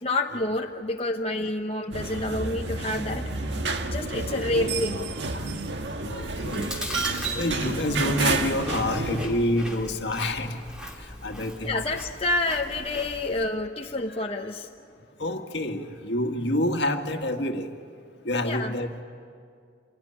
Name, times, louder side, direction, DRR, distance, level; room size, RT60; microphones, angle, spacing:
voice 1, 0.0-3.3 3.9-5.1 11.6-14.7 18.4-18.7, left 2 dB, 30° left, 2 dB, 0.9 m, -28 dB
sound 1, 1.9-9.3, right 3 dB, 75° right, 1.6 m, -30 dB
voice 2, 6.0-7.0 7.3-10.6 11.2-11.8 15.2-17.7 18.3-18.9, left 1 dB, 70° left, 4 dB, 1.7 m, -28 dB
Chewing mastication, 6.2-13.5, left 1 dB, 5° right, 2.6 m, -39 dB
27.0 x 17.5 x 10.0 m, 2.2 s
head